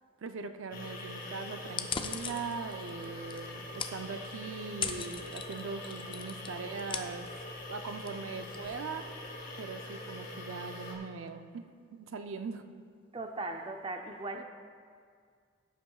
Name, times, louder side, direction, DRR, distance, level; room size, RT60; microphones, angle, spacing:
voice 1, 0.2-7.3 7.7-9.0 9.6-12.6 14.4-14.5, right 4 dB, 80° right, 8 dB, 0.5 m, -41 dB
sound 1, 0.7-10.9, left 1 dB, 45° left, 2.5 m, -43 dB
sound 2, 1.7-9.4, left 6 dB, 25° left, 0.4 m, -42 dB
voice 2, 13.1-14.4, right 2 dB, 25° right, 4 dB, 0.5 m, -38 dB
17.0 x 8.3 x 2.4 m, 2.1 s
head